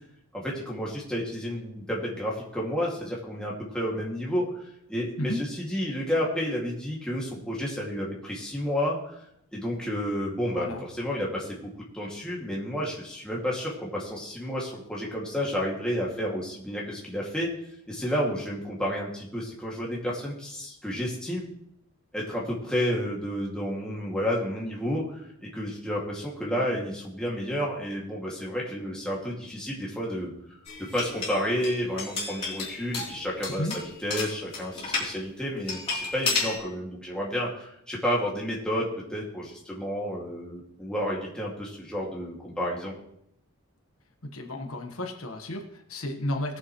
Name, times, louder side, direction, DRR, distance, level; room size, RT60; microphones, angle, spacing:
voice 1, 0.3-9.2 9.5-17.5 17.9-21.5 22.1-30.3 30.8-42.9, equal, 5° left, -4 dB, 2.2 m, -31 dB
voice 2, 10.5-10.8 33.6-33.7 44.2-46.6, left 1 dB, 75° left, 3 dB, 1.3 m, -32 dB
sound 1, 30.7-35.1 35.7-36.6, left 4 dB, 25° left, 3.3 m, -32 dB
19.5 x 7.3 x 3.1 m, 0.77 s
head